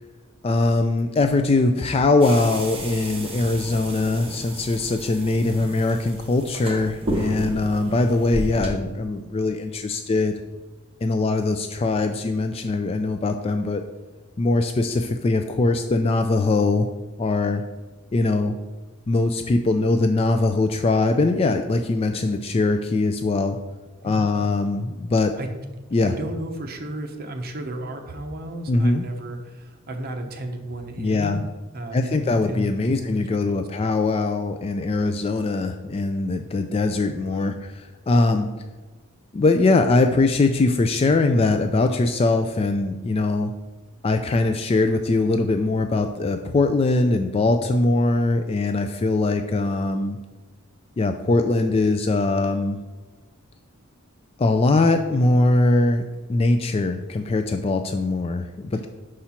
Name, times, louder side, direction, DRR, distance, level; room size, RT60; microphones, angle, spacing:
voice 1, 0.4-10.3 11.0-13.8 14.4-16.9 17.2-17.6 18.1-18.6 19.1-23.6 24.0-25.4 25.9-26.1 28.7-29.0 31.0-31.4 31.9-38.5 39.3-43.5 44.0-50.2 51.0-52.8 54.4-56.0 56.3-58.9, left 2 dB, 25° left, 6 dB, 0.3 m, -21 dB
sound 1, 2.2-8.7, right 1 dB, 25° right, 1.0 m, -33 dB
voice 2, 26.0-31.4 31.7-33.7 34.9-35.0, right 1 dB, 45° right, 5 dB, 0.8 m, -33 dB
4.9 x 4.3 x 5.7 m, 1.2 s
head